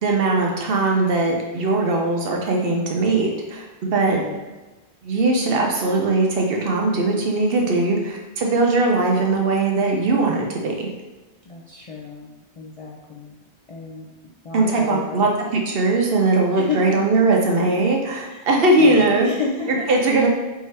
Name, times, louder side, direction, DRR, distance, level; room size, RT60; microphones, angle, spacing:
voice 1, 0.0-4.2 5.0-10.9 14.5-19.3 19.9-20.3, right 2 dB, 65° right, 0 dB, 0.8 m, -20 dB
voice 2, 4.0-4.5 11.5-13.4 13.7-14.1 14.4-15.3 16.5-16.8 18.3-18.5 18.8-19.9, left 5 dB, 50° left, -4 dB, 0.4 m, -32 dB
4.5 x 2.7 x 3.2 m, 1.1 s
omnidirectional pair, 1.1 m